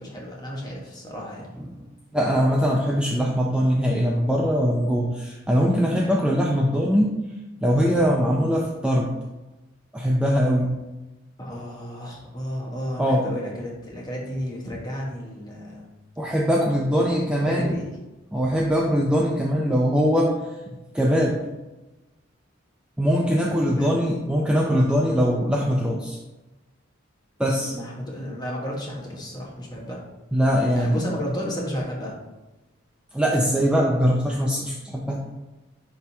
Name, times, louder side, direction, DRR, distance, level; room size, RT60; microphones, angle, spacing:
voice 1, 0.0-1.6 11.4-15.9 17.0-17.1 17.3-17.9 23.7-23.9 27.7-30.0 30.7-32.2, equal, 20° left, -3 dB, 1.3 m, -33 dB
voice 2, 2.1-7.2 7.6-9.1 9.9-10.8 13.0-13.3 16.2-17.7 18.3-20.4 20.7-21.4 23.0-26.2 27.4-27.7 30.3-31.0 33.1-35.2, equal, 5° right, -2 dB, 0.5 m, -22 dB
10.5 x 3.7 x 2.8 m, 1.1 s
head